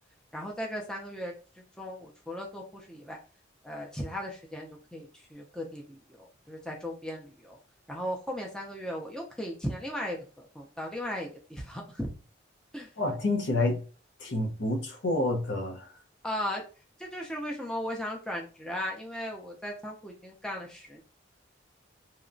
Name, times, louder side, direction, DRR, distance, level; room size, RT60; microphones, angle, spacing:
voice 1, 0.3-3.2 3.6-7.6 7.9-12.1 12.7-12.9 16.2-16.6 17.0-21.0, equal, 5° left, -1 dB, 0.4 m, -37 dB
voice 2, 13.0-13.8 14.2-15.9, left 2 dB, 70° left, 1 dB, 0.7 m, -28 dB
2.8 x 2.2 x 2.5 m, 0.36 s
head